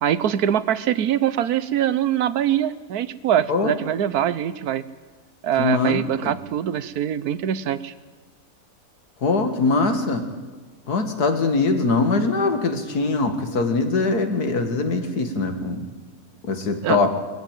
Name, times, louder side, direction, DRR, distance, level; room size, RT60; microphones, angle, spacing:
voice 1, 0.0-4.8 5.4-7.9 16.8-17.0, right 10 dB, 75° right, 16 dB, 1.3 m, -23 dB
voice 2, 5.6-6.4 9.2-10.3 10.9-15.9 16.4-17.1, left 3 dB, 85° left, 7 dB, 2.4 m, -22 dB
21.0 x 14.5 x 9.1 m, 1.3 s
omnidirectional pair, 1.6 m